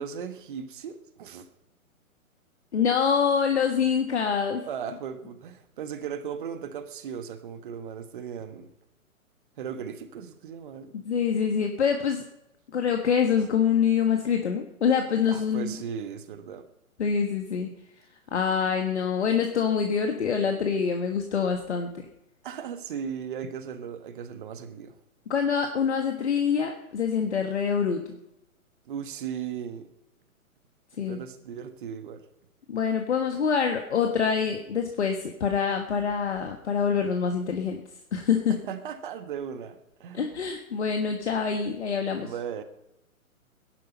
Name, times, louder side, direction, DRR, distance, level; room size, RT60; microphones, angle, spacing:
voice 1, 0.0-1.5 4.7-8.7 9.6-10.9 15.2-16.7 22.4-25.0 28.8-29.9 31.1-32.3 38.5-40.3 42.2-42.6, right 7 dB, 35° right, 10 dB, 1.4 m, -37 dB
voice 2, 2.7-4.6 11.0-12.2 12.7-15.8 17.0-17.7 18.3-21.9 25.3-28.2 31.0-31.2 32.7-37.8 38.1-38.6 40.1-42.3, left 6 dB, 50° left, 4 dB, 1.6 m, -25 dB
19.0 x 11.0 x 5.5 m, 0.86 s
figure-of-eight pair, 125°, 42 cm